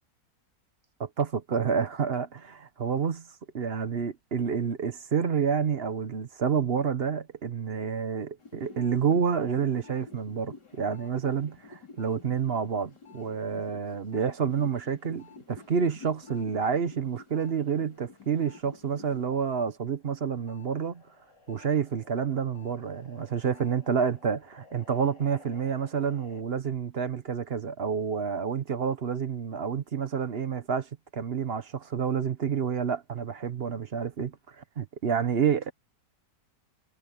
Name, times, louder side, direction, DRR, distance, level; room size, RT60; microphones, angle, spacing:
voice 1, 1.0-3.3 3.5-21.0 21.5-35.7, right 7 dB, 45° right, 1.0 m, -29 dB
sound 1, 8.4-19.7 20.0-26.4, left 4 dB, 75° left, 5.0 m, -51 dB
omnidirectional pair, 1.8 m